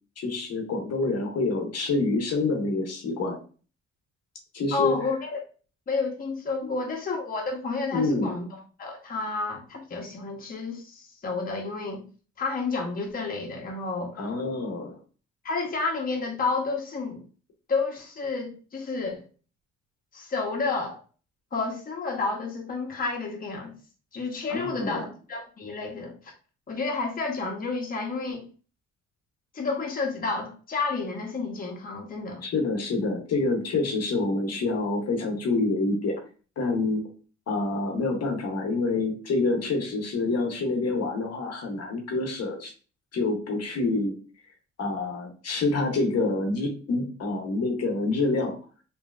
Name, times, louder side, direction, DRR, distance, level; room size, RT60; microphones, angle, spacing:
voice 1, 0.2-3.4 4.5-5.0 6.6-6.7 7.9-8.3 14.2-15.0 24.5-25.1 32.4-36.2 36.6-37.0 37.5-42.7 43.1-44.1 44.8-48.6, left 3 dB, 55° left, 0.9 m, -27 dB
voice 2, 4.7-5.4 5.9-8.5 8.8-12.0 12.4-14.2 15.4-17.2 17.7-19.2 20.1-21.0 21.5-23.7 24.1-26.3 26.7-28.4 29.5-32.4, left 4 dB, 30° left, 0.8 m, -30 dB
3.1 x 2.7 x 2.4 m
cardioid pair, 90°, 30 cm